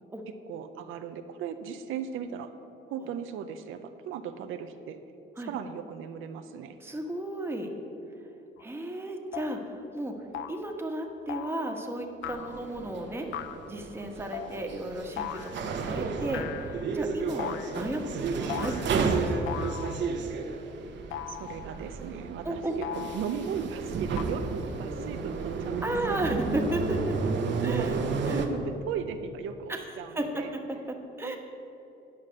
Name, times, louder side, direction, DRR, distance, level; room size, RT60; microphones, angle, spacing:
voice 1, 0.5-2.5 2.9-5.0 5.5-6.8 21.3-22.6 23.0-26.3 27.6-27.9 28.3-30.5 31.2-31.4, right 8 dB, 85° right, 8 dB, 0.6 m, -37 dB
voice 2, 6.8-7.7 8.6-10.2 10.5-13.3 13.7-19.6 22.4-22.7 25.8-27.2 27.6-28.0 28.3-28.4 29.7-29.9 30.1-31.4, right 1 dB, 10° right, 2 dB, 1.3 m, -34 dB
sound 1, 8.6-8.7 9.3-9.6 10.3-10.7 11.3-11.7 12.2-12.7 13.3-13.7 14.3-14.6 15.2-15.7 16.3-17.0 17.4-17.9 18.5-19.0 19.5-20.2 21.1-21.8 22.8-23.5 24.2-24.3, left 10 dB, 90° left, 0.4 m, -38 dB
sound 2, 12.2-28.5, right 4 dB, 65° right, 1.0 m, -32 dB
9.9 x 5.8 x 6.4 m, 2.8 s
cardioid pair, 90°, 20 cm